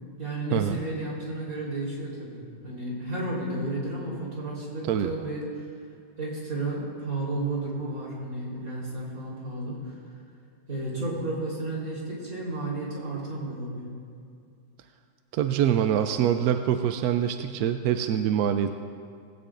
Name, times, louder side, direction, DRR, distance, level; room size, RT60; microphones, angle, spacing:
voice 1, 0.2-5.4 6.2-9.9 10.7-13.9, right 2 dB, 50° right, -5 dB, 4.3 m, -32 dB
voice 2, 15.3-18.7, right 9 dB, 70° right, 8 dB, 0.9 m, -25 dB
19.0 x 16.5 x 2.5 m, 2.3 s
omnidirectional pair, 2.0 m